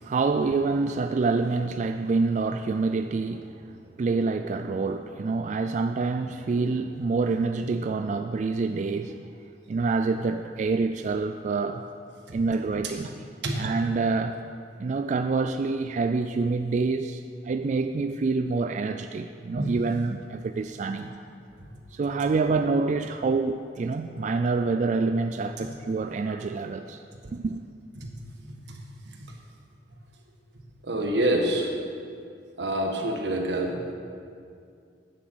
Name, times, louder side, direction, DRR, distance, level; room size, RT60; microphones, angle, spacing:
voice 1, 0.0-9.2 9.7-11.8 12.3-13.2 13.6-14.4 14.8-21.1 21.9-27.0 27.3-27.6, right 4 dB, 45° right, 7 dB, 0.3 m, -27 dB
voice 2, 30.8-31.7 32.6-33.9, right 1 dB, 85° right, 1 dB, 1.4 m, -27 dB
9.1 x 7.9 x 6.3 m, 2.3 s
head